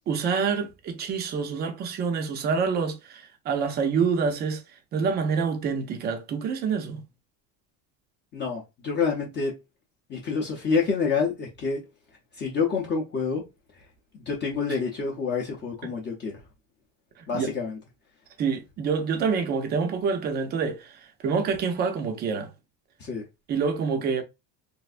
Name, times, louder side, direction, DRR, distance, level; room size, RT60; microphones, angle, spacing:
voice 1, 0.1-4.6 4.9-7.0 15.8-15.9 17.2-17.5 18.4-21.0 21.2-22.5 23.5-24.2, right 5 dB, 25° right, 0.5 m, -27 dB
voice 2, 8.3-9.5 10.1-11.8 12.4-13.4 14.1-16.4 17.3-17.8 23.0-23.2, left 5 dB, 30° left, 0.6 m, -27 dB
3.4 x 2.5 x 2.4 m
cardioid pair, 175°, 37 cm